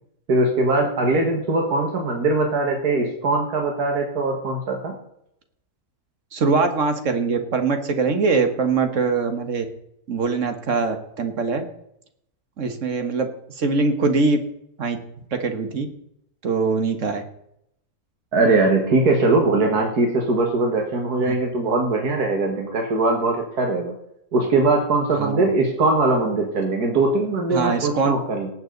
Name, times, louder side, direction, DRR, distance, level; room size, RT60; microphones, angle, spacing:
voice 1, 0.3-5.0 18.3-23.9 24.3-28.5, right 2 dB, 80° right, 2 dB, 2.2 m, -21 dB
voice 2, 6.3-9.7 10.1-11.6 12.6-13.3 13.6-14.4 14.8-15.0 15.3-15.9 16.4-17.2 25.2-25.4 27.5-28.1, right 4 dB, 55° right, 7 dB, 1.8 m, -22 dB
18.5 x 8.2 x 3.9 m, 0.77 s
omnidirectional pair, 1.6 m